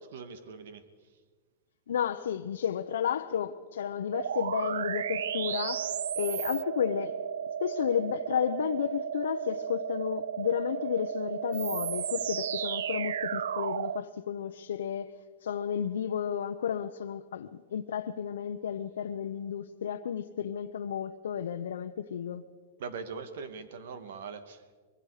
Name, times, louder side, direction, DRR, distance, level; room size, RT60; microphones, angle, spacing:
voice 1, 0.1-0.8 22.8-24.8, right 5 dB, 70° right, 2.0 m, -41 dB
voice 2, 1.9-5.9 6.2-7.1 7.6-15.1 15.4-22.4, left 8 dB, 90° left, 0.8 m, -32 dB
sound 1, 4.1-14.0, right 8 dB, 90° right, 0.6 m, -33 dB
24.0 x 23.0 x 5.0 m
supercardioid pair, 145°, 0 cm